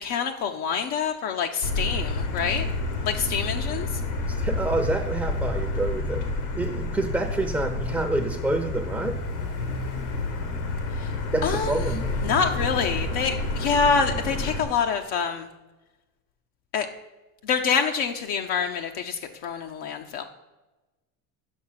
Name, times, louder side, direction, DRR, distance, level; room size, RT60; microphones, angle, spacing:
voice 1, 0.0-2.7 3.1-3.9 11.4-11.8 12.2-15.5 16.7-16.9 17.5-20.2, left 6 dB, 60° left, 4 dB, 0.7 m, -26 dB
Motor vehicle (road), 1.6-14.6, left 2 dB, 75° left, 1.5 m, -29 dB
voice 2, 4.3-6.2 6.6-9.2 11.3-12.1, right 2 dB, 5° right, 4 dB, 0.6 m, -27 dB
6.4 x 5.4 x 5.7 m, 1.1 s
supercardioid pair, 95°, 45 cm